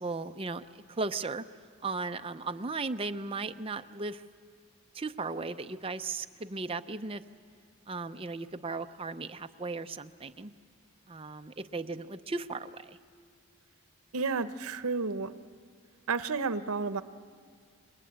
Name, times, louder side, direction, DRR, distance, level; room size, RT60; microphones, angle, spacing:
voice 1, 0.0-1.4 1.8-4.2 4.9-7.2 7.9-10.5 11.1-13.0, right 3 dB, 25° right, 9 dB, 0.6 m, -36 dB
voice 2, 14.1-15.3 16.1-17.0, right 4 dB, 85° right, 12 dB, 0.8 m, -31 dB
27.5 x 21.5 x 8.7 m, 2.2 s
head